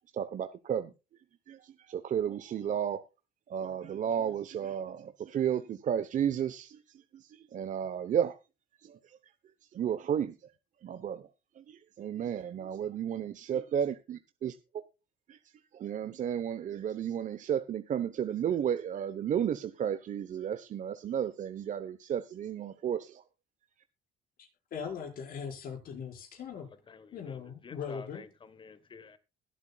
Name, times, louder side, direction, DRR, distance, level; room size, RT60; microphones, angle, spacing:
voice 1, 0.1-0.9 1.5-3.0 3.5-6.8 7.1-8.3 8.8-9.0 9.7-10.4 10.8-11.3 11.6-14.5 15.3-15.4 15.7-23.2, right 9 dB, 50° right, 0.9 m, -33 dB
voice 2, 24.7-26.7 27.1-28.3, left 6 dB, 60° left, 4.9 m, -40 dB
voice 3, 26.9-29.2, left 5 dB, 30° left, 1.3 m, -50 dB
21.5 x 8.2 x 2.3 m
cardioid pair, 110°, 17 cm